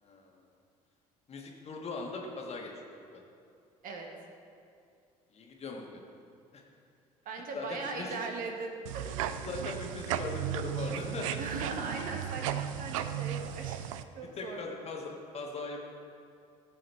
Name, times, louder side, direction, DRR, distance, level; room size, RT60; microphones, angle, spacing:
voice 1, 0.0-0.4 1.3-3.3 5.3-6.0 6.5-6.6 7.5-8.2 9.0-11.4 14.4-15.8, left 3 dB, 35° left, 0 dB, 1.7 m, -40 dB
voice 2, 7.2-9.0 11.4-13.8 14.1-14.8, right 4 dB, 50° right, 2 dB, 1.4 m, -39 dB
sound 1, 8.9-14.0, right 10 dB, 65° right, 0.5 m, -35 dB
16.5 x 7.5 x 3.4 m, 2.5 s
figure-of-eight pair, 55°, 18 cm